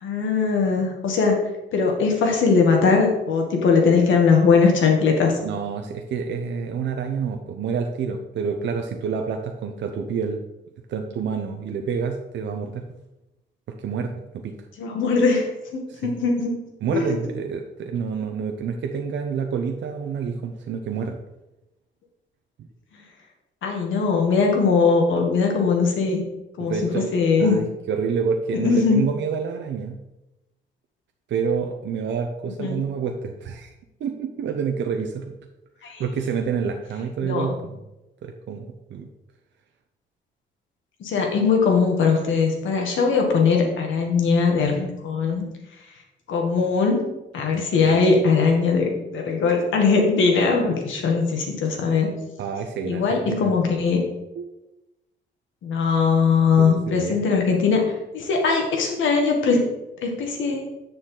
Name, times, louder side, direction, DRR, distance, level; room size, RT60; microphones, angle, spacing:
voice 1, 0.0-1.4 1.7-5.3 14.8-15.5 15.7-16.5 16.9-17.2 23.6-26.2 26.6-26.7 27.1-27.6 28.6-29.0 32.6-32.8 35.8-36.0 37.2-37.5 41.0-45.4 46.3-47.1 47.3-52.1 52.9-54.0 55.6-59.6 60.0-60.6, left 5 dB, 75° left, 1 dB, 1.9 m, -20 dB
voice 2, 5.4-10.4 10.9-12.8 13.8-14.5 15.9-16.1 16.8-21.2 26.6-27.1 27.4-30.0 31.3-33.7 34.0-35.3 35.8-37.8 38.2-39.1 47.5-48.0 52.4-53.5 54.4-54.5 56.6-57.2, right 6 dB, 65° right, 4 dB, 0.7 m, -28 dB
7.9 x 6.5 x 3.8 m, 0.97 s
cardioid pair, 90°, 20 cm